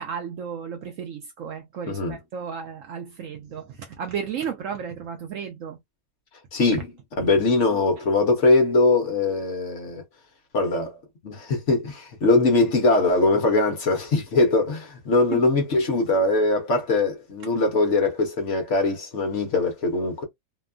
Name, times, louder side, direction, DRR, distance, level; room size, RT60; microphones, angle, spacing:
voice 1, 0.0-5.8 15.3-15.5, right 7 dB, 65° right, 0.8 m, -34 dB
voice 2, 6.5-6.9 7.2-10.0 10.5-11.0 11.2-20.2, left 3 dB, 55° left, 1.0 m, -21 dB
2.9 x 2.2 x 2.3 m
omnidirectional pair, 1.7 m